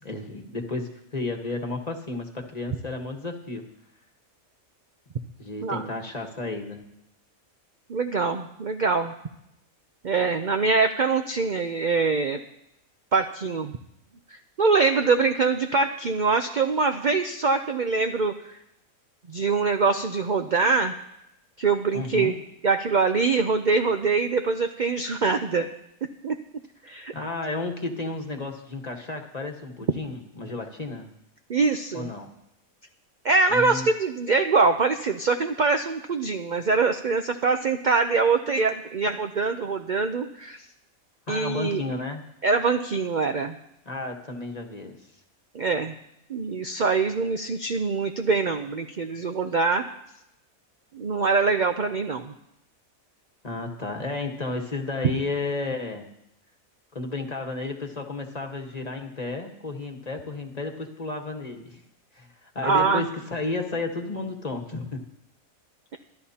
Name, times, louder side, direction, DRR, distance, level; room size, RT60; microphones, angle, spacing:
voice 1, 0.0-3.6 5.4-6.8 21.9-22.4 27.1-31.1 31.9-32.3 33.5-33.9 41.3-42.2 43.8-45.1 53.4-56.1 56.9-61.8 62.1-62.3 62.5-65.0, left 3 dB, 30° left, 3 dB, 1.4 m, -32 dB
voice 2, 7.9-9.1 10.0-12.4 13.1-13.7 14.6-18.6 19.3-20.9 21.6-22.4 22.6-25.7 26.2-26.3 26.9-27.1 31.5-32.1 33.2-40.6 41.3-41.8 42.4-43.5 45.5-45.9 46.3-49.8 50.9-52.3 62.6-63.1, right 4 dB, 50° right, 6 dB, 0.6 m, -24 dB
24.5 x 11.5 x 2.9 m, 0.82 s
omnidirectional pair, 1.5 m